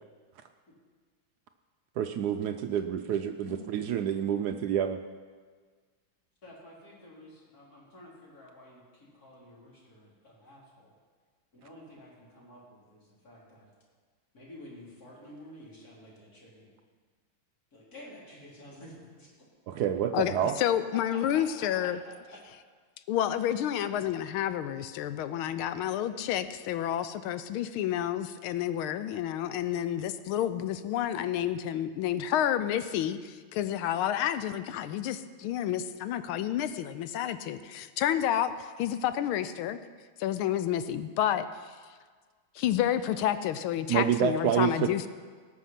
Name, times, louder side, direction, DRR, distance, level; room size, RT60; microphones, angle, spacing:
voice 1, 2.0-5.0 19.7-20.6 43.9-44.9, right 9 dB, 85° right, 7 dB, 0.8 m, -28 dB
voice 2, 6.4-10.9 11.5-13.7 14.3-16.7 17.7-19.3 21.1-21.9 22.3-22.4, left 1 dB, 45° left, -5 dB, 3.6 m, -50 dB
voice 3, 20.1-22.0 23.1-39.8 40.2-41.8 42.5-45.1, left 11 dB, 90° left, 12 dB, 1.5 m, -30 dB
18.5 x 6.4 x 5.8 m, 1.5 s
omnidirectional pair, 2.3 m